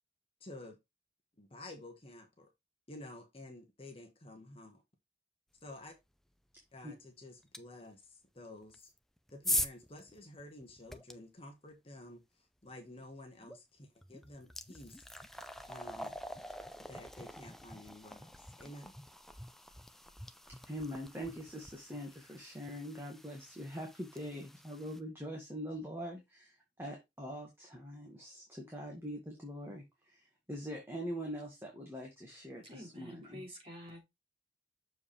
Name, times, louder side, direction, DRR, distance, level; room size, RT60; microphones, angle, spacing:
voice 1, 0.4-0.8 1.4-2.5 2.9-4.8 5.6-5.9 6.7-8.9 9.3-15.2 15.7-16.4 16.9-18.3 18.6-19.0, left 1 dB, 35° left, 1.5 m, -51 dB
sound 1, 7.5-7.6 8.7-11.1 13.4-13.6 14.0-25.0, left 1 dB, ahead, 0.5 m, -43 dB
voice 2, 20.6-33.4, equal, 15° right, 1.8 m, -43 dB
voice 3, 32.6-34.0, left 1 dB, 30° right, 3.2 m, -49 dB
6.9 x 4.9 x 3.3 m
head